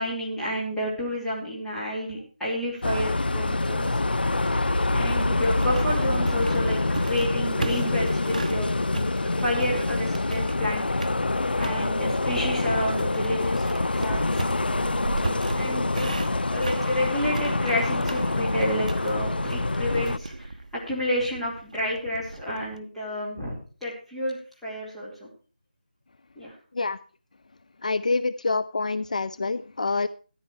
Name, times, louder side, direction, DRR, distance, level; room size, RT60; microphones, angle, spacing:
voice 1, 0.0-3.9 4.9-6.8 7.1-8.7 9.2-10.8 11.6-14.5 15.5-23.5 23.8-25.3 26.4-26.5, left 1 dB, ahead, -10 dB, 2.6 m, -30 dB
sound 1, 2.8-20.2, left 2 dB, 80° left, 0.8 m, -26 dB
sound 2, 5.1-8.6 8.9-10.7 11.0-11.8 12.3-22.8, right 2 dB, 50° right, 1.1 m, -36 dB
voice 2, 27.8-30.1, left 3 dB, 50° left, 15 dB, 0.5 m, -26 dB
14.0 x 9.8 x 4.6 m, 0.38 s
figure-of-eight pair, 170°, 5 cm